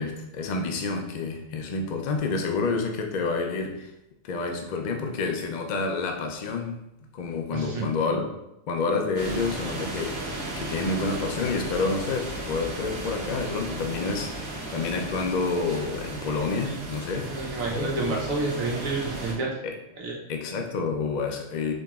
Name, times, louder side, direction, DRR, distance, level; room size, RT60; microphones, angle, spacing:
voice 1, 0.0-3.9 4.2-6.8 7.1-8.3 8.7-18.1 19.6-19.7 20.3-21.7, left 4 dB, 60° left, 3 dB, 0.4 m, -29 dB
voice 2, 7.5-7.9 17.2-19.5 20.0-20.1, right 3 dB, 85° right, -2 dB, 1.3 m, -29 dB
sound 1, 9.1-19.3, right 1 dB, 55° right, 1.1 m, -35 dB
5.0 x 2.9 x 2.4 m, 0.84 s
omnidirectional pair, 1.4 m